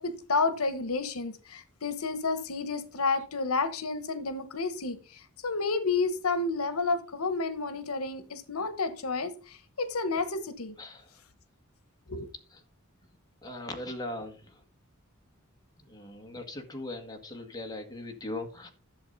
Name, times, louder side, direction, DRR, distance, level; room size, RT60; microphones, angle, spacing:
voice 1, 0.0-10.8 12.1-12.3, left 3 dB, 85° left, 12 dB, 1.1 m, -30 dB
voice 2, 10.8-11.1 12.5-12.6 13.4-14.6 15.8-18.7, left 1 dB, 20° left, 4 dB, 1.8 m, -39 dB
12.0 x 7.3 x 4.1 m, 0.35 s
head